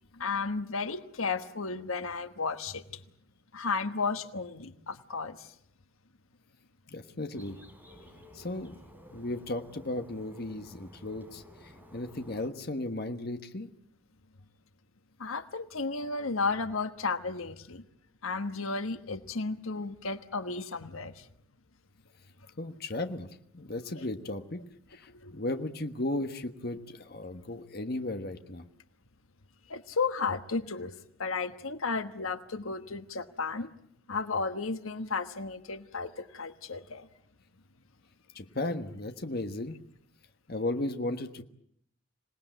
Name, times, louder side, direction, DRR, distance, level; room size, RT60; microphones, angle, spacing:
voice 1, 0.1-3.0 3.5-5.5 15.2-17.8 18.2-21.2 25.2-25.4 29.7-30.9 31.2-33.7 34.1-37.1, left 4 dB, 85° left, 10 dB, 1.3 m, -33 dB
voice 2, 6.9-7.6 8.3-8.8 9.1-13.7 22.6-24.6 24.9-28.6 38.3-39.8 40.5-41.4, left 2 dB, 50° left, 7 dB, 1.3 m, -35 dB
Bird, 7.3-12.5, equal, 10° right, 4.6 m, -53 dB
26.5 x 18.5 x 9.2 m, 0.71 s
head